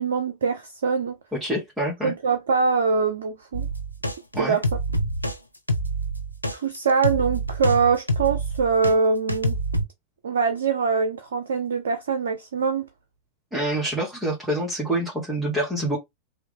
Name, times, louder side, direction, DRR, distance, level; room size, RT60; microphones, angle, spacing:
voice 1, 0.0-1.2 2.0-3.7 4.4-4.7 6.5-9.6 10.2-12.9, right 5 dB, 65° right, 0.5 m, -23 dB
voice 2, 1.3-2.1 4.3-4.6 13.5-16.0, right 1 dB, 5° right, 1.4 m, -26 dB
sound 1, 3.5-8.9 9.3-9.8, right 1 dB, 90° left, 0.5 m, -26 dB
3.1 x 2.5 x 3.6 m
figure-of-eight pair, 90°, 0 cm